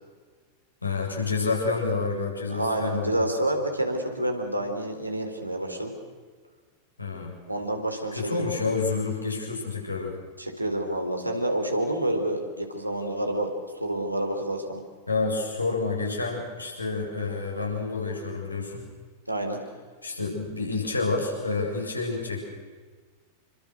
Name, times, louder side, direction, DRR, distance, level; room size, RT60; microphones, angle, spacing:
voice 1, 0.8-3.3 7.0-7.3 8.2-10.1 15.1-18.8 20.0-22.4, left 4 dB, 80° left, 0 dB, 7.6 m, -29 dB
voice 2, 2.5-5.9 7.5-8.4 10.4-14.8 19.3-19.6, right 1 dB, 85° right, 3 dB, 4.3 m, -28 dB
29.0 x 24.5 x 6.5 m, 1.5 s
figure-of-eight pair, 90°, 0 cm